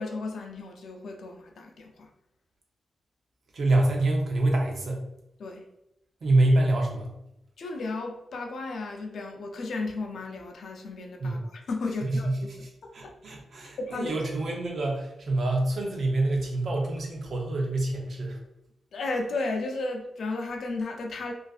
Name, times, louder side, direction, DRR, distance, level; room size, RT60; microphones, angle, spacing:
voice 1, 0.0-2.1 5.4-5.6 7.6-13.1 13.8-14.2 18.9-21.3, left 3 dB, 75° left, 2 dB, 0.4 m, -34 dB
voice 2, 3.5-5.1 6.2-7.1 11.2-11.4 12.0-12.6 12.9-18.4, right 2 dB, 65° right, 1 dB, 0.6 m, -26 dB
2.4 x 2.4 x 2.3 m, 0.85 s
cardioid pair, 80°, 0 cm